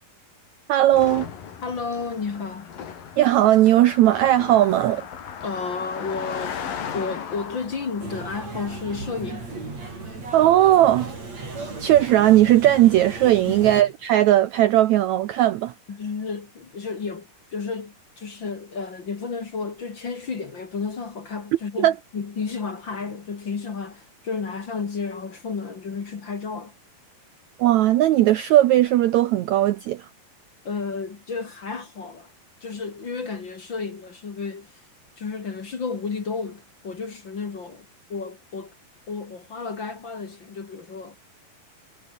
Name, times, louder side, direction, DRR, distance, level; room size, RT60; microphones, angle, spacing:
voice 1, 0.7-1.3 3.2-5.0 10.3-11.1 11.8-15.7 21.8-21.9 27.6-30.0, right 13 dB, 75° right, 1.7 m, -17 dB
Car passing by, 0.9-10.5, left 7 dB, 70° left, 4.8 m, -37 dB
voice 2, 1.6-2.7 5.4-6.6 6.9-9.5 13.4-13.8 15.9-26.7 30.6-32.3 32.6-34.7 35.2-38.7 39.1-41.2, left 5 dB, 35° left, 2.4 m, -32 dB
sound 1, 8.0-13.8, right 3 dB, 45° right, 8.1 m, -36 dB
omnidirectional pair, 4.2 m